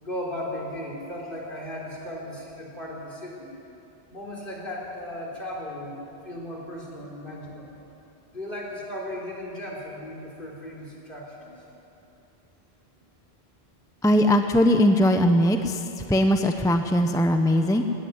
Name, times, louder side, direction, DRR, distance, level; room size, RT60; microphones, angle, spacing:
voice 1, 0.0-3.5 4.1-6.0 6.2-7.7 8.3-11.5, left 1 dB, 55° left, -2 dB, 4.5 m, -36 dB
voice 2, 14.0-15.8 16.1-17.8, equal, 5° left, 6 dB, 0.8 m, -20 dB
18.0 x 18.0 x 9.7 m, 2.9 s
omnidirectional pair, 1.1 m